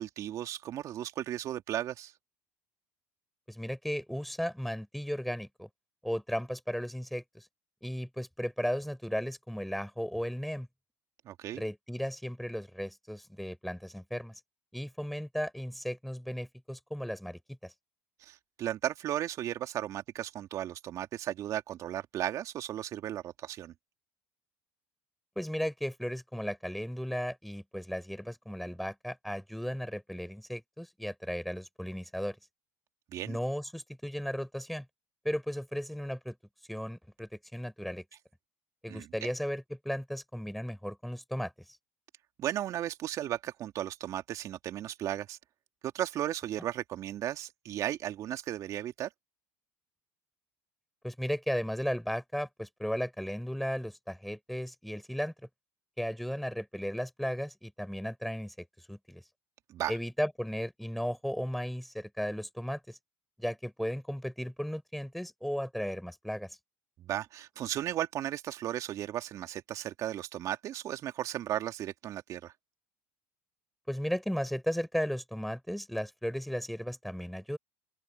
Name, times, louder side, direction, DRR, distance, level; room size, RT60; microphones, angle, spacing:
voice 1, 0.0-2.1 11.3-11.6 18.2-23.7 33.1-33.4 38.9-39.3 42.4-45.4 45.8-49.1 59.7-60.0 67.0-72.5, right 12 dB, 50° right, 2.3 m, -35 dB
voice 2, 3.5-5.7 6.0-7.4 7.8-10.7 11.5-14.4 14.7-17.7 25.4-32.4 33.3-34.9 35.2-36.4 36.7-38.0 38.8-41.5 51.0-55.3 56.0-59.2 59.9-63.0 63.4-66.6 73.9-77.6, equal, ahead, 5.3 m, -35 dB
open air
hypercardioid pair, 75°, 7 cm